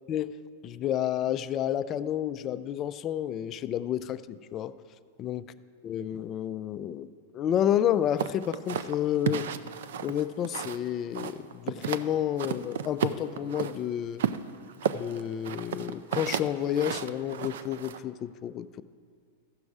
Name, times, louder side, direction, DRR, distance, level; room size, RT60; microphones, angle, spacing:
voice 1, 0.6-4.8 5.2-5.5 5.8-9.5 10.0-14.2 14.9-18.8, left 10 dB, 30° left, 13 dB, 0.3 m, -30 dB
sound 1, 8.2-10.9 11.1-12.1 12.4-13.7 14.2-18.0, right 8 dB, 75° right, 0.4 m, -32 dB
14.5 x 6.2 x 4.8 m, 2.2 s
supercardioid pair, 145°, 0 cm